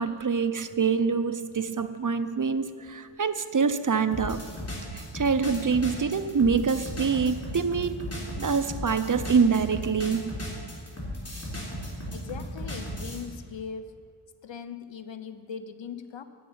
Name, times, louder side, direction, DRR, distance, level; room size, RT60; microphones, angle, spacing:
voice 1, 0.0-4.4 4.9-8.0 8.4-10.4, right 5 dB, 40° right, 11 dB, 0.6 m, -25 dB
sound 1, 4.1-13.2, equal, 30° left, 3.5 m, -36 dB
voice 2, 12.1-14.1 14.4-16.2, left 6 dB, 65° left, 10 dB, 0.8 m, -40 dB
9.4 x 7.9 x 9.5 m, 2.3 s
wide cardioid pair, 70°, 48 cm